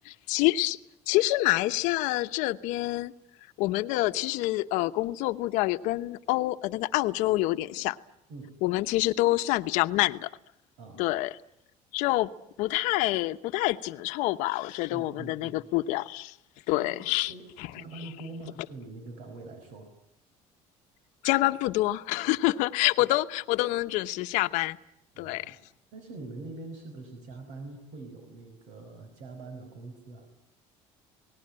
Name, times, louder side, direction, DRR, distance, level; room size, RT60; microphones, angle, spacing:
voice 1, 0.3-0.8 1.1-3.1 3.6-8.0 8.6-10.3 11.0-11.3 11.9-12.3 12.6-16.3 16.7-17.3 21.2-24.8 25.2-25.5, left 18 dB, 85° left, 1.0 m, -27 dB
voice 2, 14.9-15.6 16.8-17.5 17.7-19.9 25.1-25.6 25.9-30.3, right 3 dB, 75° right, 5.4 m, -44 dB
28.5 x 19.5 x 8.9 m
cardioid pair, 170°, 12 cm